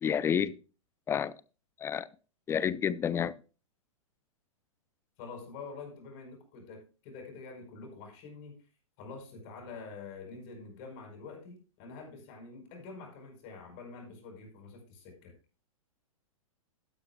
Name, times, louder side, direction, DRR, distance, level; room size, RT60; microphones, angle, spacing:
voice 1, 0.0-0.6 1.1-1.3 1.8-2.1 2.5-3.3, left 8 dB, 15° left, 0.4 m, -29 dB
voice 2, 5.2-8.6 9.0-15.3, left 4 dB, 40° left, 5.1 m, -46 dB
12.0 x 11.5 x 2.2 m
hypercardioid pair, 125°, 18 cm